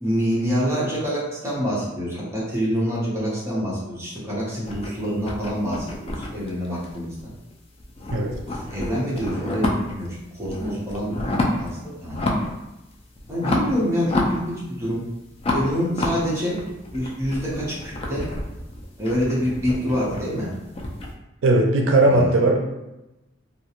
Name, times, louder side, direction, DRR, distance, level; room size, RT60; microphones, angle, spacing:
voice 1, 0.0-7.3 8.5-10.1 10.4-12.2 13.3-15.0 15.5-16.6 16.9-18.2 19.0-20.5 22.1-22.3, equal, 15° right, -7 dB, 0.8 m, -26 dB
sound 1, 4.6-7.5 7.8-10.1 10.4-11.7 12.1-12.6 12.9-14.9 15.4-21.1, left 2 dB, 30° left, 0.4 m, -29 dB
voice 2, 21.4-22.6, right 2 dB, 70° right, 1 dB, 0.5 m, -18 dB
2.4 x 2.2 x 2.9 m, 0.97 s
head